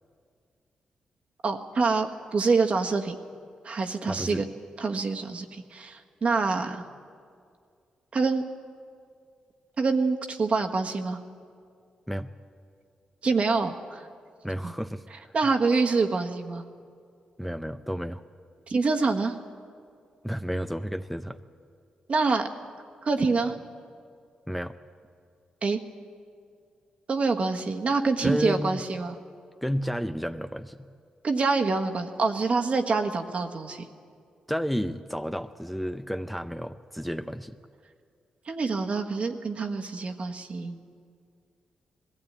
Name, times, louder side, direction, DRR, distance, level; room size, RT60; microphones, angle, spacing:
voice 1, 1.4-3.1 3.6-4.5 4.8-6.8 8.1-8.4 9.8-11.2 13.2-14.0 14.6-14.7 15.3-16.6 18.7-19.4 22.1-22.5 23.0-23.6 25.6-25.8 27.1-29.2 31.2-33.8 38.5-40.8, right 4 dB, 50° right, 4 dB, 1.5 m, -26 dB
voice 2, 4.0-4.4 12.1-12.3 14.4-15.3 17.4-18.2 20.2-21.4 24.5-24.7 28.2-28.9 29.6-30.9 34.5-37.6, equal, ahead, 7 dB, 0.6 m, -31 dB
20.0 x 15.5 x 8.9 m, 2.2 s
cardioid pair, 65°, 3 cm